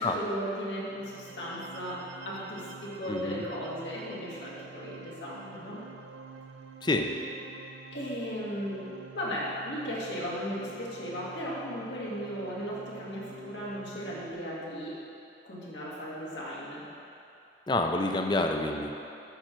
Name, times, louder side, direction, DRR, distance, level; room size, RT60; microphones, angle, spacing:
voice 1, 0.0-5.8 7.9-8.8 9.1-14.9 15.4-16.8, equal, 80° left, -6 dB, 2.1 m, -36 dB
sound 1, 0.8-14.3, right 5 dB, 85° right, 0.5 m, -48 dB
voice 2, 3.1-3.4 6.8-7.1 17.7-18.9, left 2 dB, 25° left, 4 dB, 0.5 m, -28 dB
9.2 x 6.3 x 4.5 m, 2.7 s
head